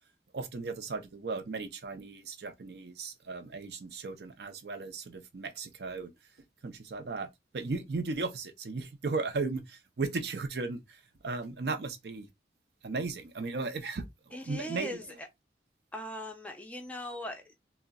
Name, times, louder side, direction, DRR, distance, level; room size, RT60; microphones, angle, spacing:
voice 1, 0.3-6.1 6.6-11.0 11.2-12.3 12.8-14.0 14.3-15.0, right 3 dB, 60° right, 0.5 m, -36 dB
voice 2, 14.3-15.3 15.9-17.5, equal, 10° left, 0.5 m, -40 dB
3.7 x 2.1 x 2.2 m
head